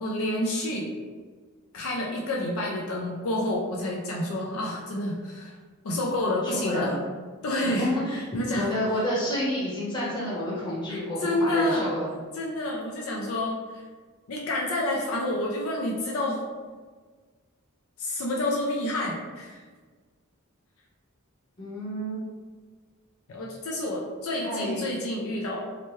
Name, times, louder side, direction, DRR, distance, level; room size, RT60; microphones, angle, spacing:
voice 1, 0.0-0.9 1.7-5.6 5.8-7.0 7.4-8.7 10.9-11.8 12.3-13.8 14.3-16.4 18.0-19.6 23.3-25.6, left 1 dB, 65° left, -2 dB, 0.4 m, -29 dB
voice 2, 6.6-7.0 7.6-8.2 8.5-12.1 21.6-22.2 24.4-24.9, equal, 20° left, -7 dB, 0.9 m, -29 dB
2.9 x 2.1 x 3.1 m, 1.5 s
head